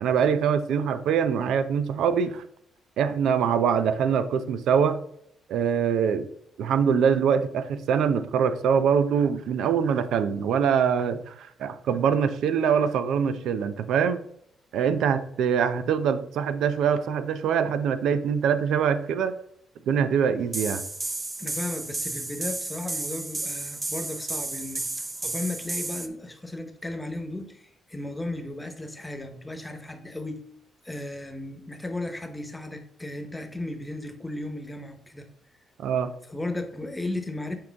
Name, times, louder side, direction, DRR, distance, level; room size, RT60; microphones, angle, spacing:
voice 1, 0.0-2.4 3.0-5.0 5.5-6.3 6.6-14.2 14.7-19.3 19.9-20.8 35.8-36.1, right 7 dB, 80° right, 12 dB, 0.6 m, -24 dB
sound 1, 20.5-26.1, right 2 dB, 25° right, 0.8 m, -32 dB
voice 2, 21.4-30.4 30.8-35.3 36.3-37.6, left 2 dB, 10° left, 7 dB, 1.1 m, -35 dB
7.6 x 4.8 x 3.5 m, 0.70 s
cardioid pair, 90°, 0 cm